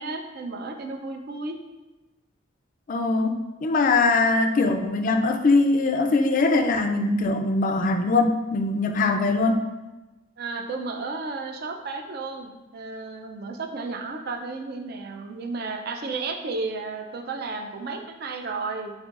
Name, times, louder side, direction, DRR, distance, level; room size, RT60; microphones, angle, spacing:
voice 1, 0.0-1.6 10.4-18.9, right 3 dB, 50° right, 4 dB, 0.4 m, -33 dB
voice 2, 2.9-9.6, left 3 dB, 40° left, 5 dB, 0.3 m, -22 dB
7.7 x 2.6 x 2.4 m, 1.1 s
head